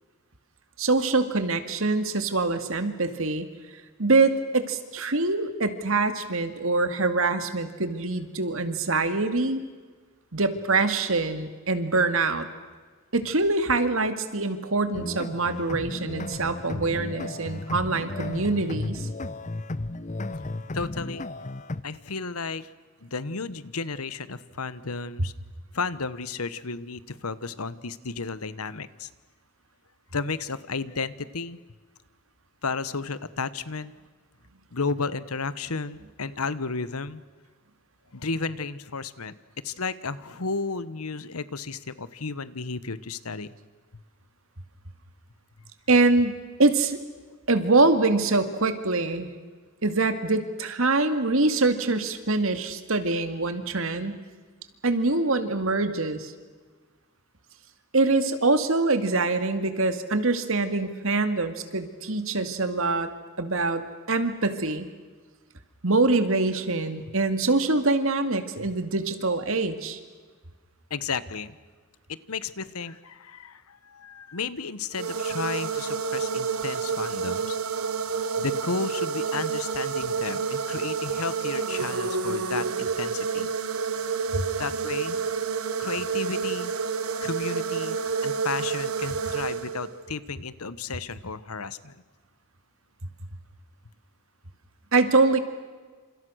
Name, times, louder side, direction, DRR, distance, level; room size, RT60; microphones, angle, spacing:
voice 1, 0.8-3.5 4.0-9.6 10.3-12.5 13.1-19.1 45.9-47.0 47.5-49.3 49.8-54.2 54.8-56.3 57.9-63.1 63.4-64.9 65.8-70.0 84.3-84.4 94.9-95.4, right 3 dB, 65° right, 9 dB, 2.2 m, -24 dB
sound 1, 14.9-21.8, left 2 dB, 35° left, 0.8 m, -34 dB
voice 2, 20.7-21.3 21.8-22.7 23.0-25.3 25.7-29.1 30.1-31.6 32.6-33.9 34.7-37.2 38.1-39.3 39.6-43.6 68.6-68.7 70.9-71.6 72.1-77.6 78.4-83.5 84.6-85.2 85.8-86.7 87.2-92.0, left 4 dB, 90° left, 16 dB, 1.2 m, -33 dB
sound 2, 74.9-90.1, right 5 dB, 85° right, 1.4 m, -29 dB
29.0 x 27.5 x 6.4 m, 1.4 s
head